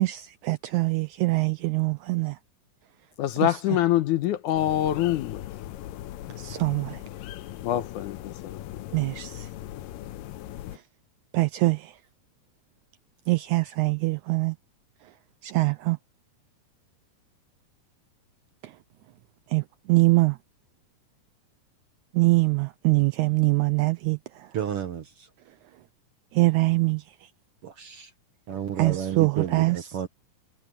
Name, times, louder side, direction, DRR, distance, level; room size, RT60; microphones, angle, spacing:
voice 1, 0.0-2.4 3.4-3.5 6.4-7.0 8.9-9.5 11.3-11.9 13.3-14.6 15.4-16.0 18.6-18.7 19.5-20.4 22.1-24.5 26.3-27.0 28.8-29.8, right 22 dB, 85° right, 1.7 m, -23 dB
voice 2, 3.2-5.4 7.6-8.6, left 13 dB, 75° left, 2.2 m, -25 dB
sound 1, 4.5-10.8, left 13 dB, 90° left, 2.5 m, -39 dB
voice 3, 24.5-25.3 27.6-28.1 28.5-30.1, right 9 dB, 60° right, 1.6 m, -32 dB
omnidirectional pair, 3.9 m